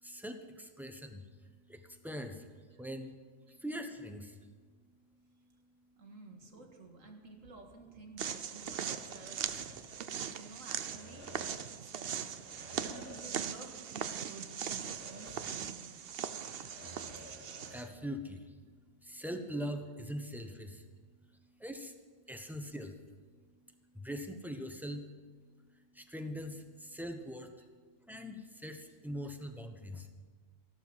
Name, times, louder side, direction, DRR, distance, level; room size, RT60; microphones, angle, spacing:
voice 1, 0.0-2.5 2.8-3.2 3.5-4.4 17.3-18.6 19.0-20.8 21.6-21.9 22.3-23.0 23.9-25.1 25.9-27.5 28.0-30.1, equal, ahead, 6 dB, 0.9 m, -42 dB
voice 2, 6.0-16.1 19.9-20.0 24.7-24.8 25.5-25.6 27.6-28.0, right 3 dB, 75° right, 3 dB, 2.2 m, -53 dB
sound 1, 8.2-17.9, right 8 dB, 55° right, 0.8 m, -40 dB
sound 2, 8.6-10.3 10.6-11.8 12.3-13.7 14.0-14.1 14.7-15.9 16.2-18.1, left 1 dB, 45° left, 1.9 m, -53 dB
15.0 x 12.0 x 5.7 m, 1.5 s
omnidirectional pair, 1.4 m